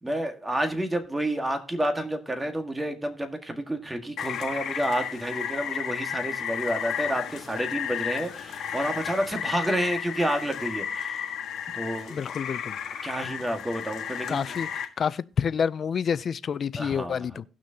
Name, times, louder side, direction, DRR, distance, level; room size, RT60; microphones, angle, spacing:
voice 1, 0.0-11.3 11.7-12.2 13.0-14.6 16.7-17.4, right 1 dB, 10° right, 1.7 m, -30 dB
Rain, 4.2-14.8, left 8 dB, 70° left, 1.6 m, -33 dB
voice 2, 12.1-12.7 14.3-14.7 15.0-17.4, left 7 dB, 45° left, 0.4 m, -28 dB
18.0 x 6.2 x 2.8 m
cardioid pair, 110°, 0 cm